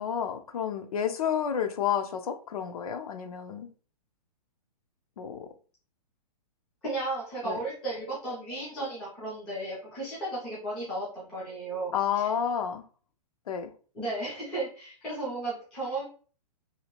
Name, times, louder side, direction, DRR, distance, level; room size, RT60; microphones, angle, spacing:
voice 1, 0.0-3.7 5.2-5.5 7.4-7.6 11.9-12.8 13.5-13.7, left 8 dB, 65° left, 8 dB, 0.5 m, -30 dB
voice 2, 6.8-12.3 13.9-16.0, right 2 dB, 5° left, -8 dB, 0.3 m, -34 dB
2.8 x 2.4 x 2.9 m, 0.40 s
hypercardioid pair, 175°, 21 cm